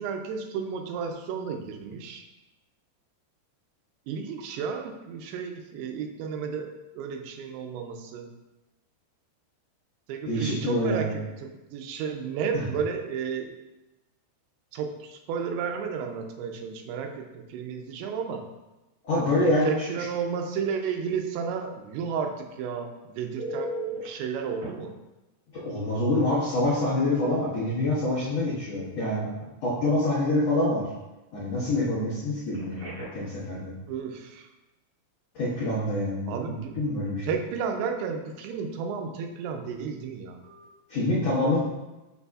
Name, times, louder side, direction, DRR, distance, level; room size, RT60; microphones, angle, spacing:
voice 1, 0.0-2.2 4.1-8.3 10.1-13.6 14.7-18.5 19.1-23.7 24.0-24.9 33.9-34.5 36.3-36.8 37.2-40.4 41.4-41.5, right 6 dB, 85° right, 4 dB, 2.9 m, -33 dB
voice 2, 10.3-11.1 12.5-12.6 19.0-19.8 25.5-29.3 29.6-30.9 31.3-33.7 35.3-37.2 40.9-41.6, left 1 dB, 80° left, -9 dB, 1.4 m, -26 dB
Telephone, 23.4-24.1 24.6-24.7 26.5-26.6 27.0-27.2 32.5-33.3 40.4-40.6, right 1 dB, 40° right, 2.8 m, -36 dB
6.6 x 6.4 x 2.4 m, 1.0 s
omnidirectional pair, 5.2 m